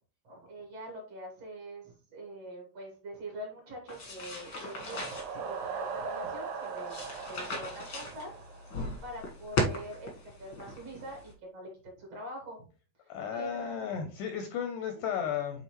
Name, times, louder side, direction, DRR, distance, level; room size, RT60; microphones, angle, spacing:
voice 1, 0.2-6.9 7.3-8.4 9.0-12.6 13.0-14.0, right 1 dB, 55° right, 0 dB, 2.1 m, -44 dB
sound 1, 3.9-11.3, left 2 dB, 60° left, 1.1 m, -38 dB
sound 2, 4.2-9.1, right 6 dB, 90° right, 2.9 m, -40 dB
voice 2, 13.1-15.6, left 8 dB, 85° left, 6 dB, 1.9 m, -34 dB
8.2 x 3.8 x 3.0 m, 0.37 s
omnidirectional pair, 4.3 m